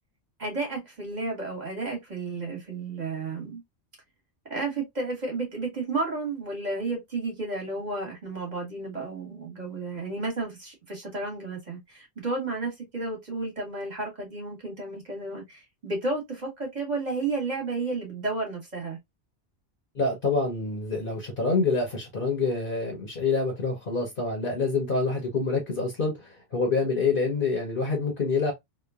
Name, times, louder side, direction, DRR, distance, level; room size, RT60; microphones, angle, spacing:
voice 1, 0.4-3.6 4.5-19.0, right 3 dB, 40° right, 1.4 m, -32 dB
voice 2, 19.9-28.5, left 3 dB, 50° left, 0.9 m, -26 dB
3.0 x 2.2 x 2.2 m
omnidirectional pair, 1.2 m